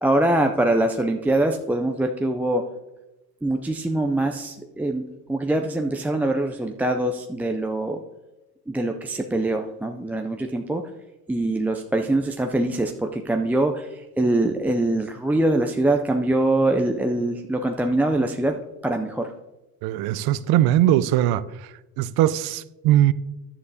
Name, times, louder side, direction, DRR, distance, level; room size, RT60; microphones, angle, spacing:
voice 1, 0.0-2.7 3.4-8.0 8.7-10.9 11.3-19.3, right 1 dB, 5° right, 0.3 m, -23 dB
voice 2, 19.8-21.4 22.0-23.1, right 13 dB, 50° right, 0.6 m, -20 dB
11.5 x 10.0 x 2.7 m
hypercardioid pair, 75°, 48 cm